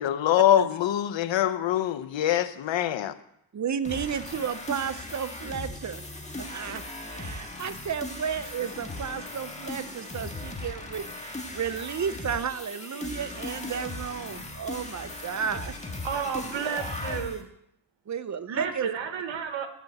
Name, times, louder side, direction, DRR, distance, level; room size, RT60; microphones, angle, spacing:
voice 1, 0.0-3.2, left 11 dB, 75° left, 12 dB, 0.8 m, -24 dB
voice 2, 3.5-6.0 6.5-6.8 7.1-15.7 16.1-16.3 18.1-18.9, right 7 dB, 40° right, 12 dB, 0.8 m, -33 dB
sound 1, 3.8-17.4, left 2 dB, 15° left, 1.8 m, -38 dB
voice 3, 16.0-17.4 18.5-19.7, right 7 dB, 80° right, 7 dB, 1.5 m, -31 dB
12.0 x 5.3 x 7.9 m, 0.75 s
cardioid pair, 90°, 45 cm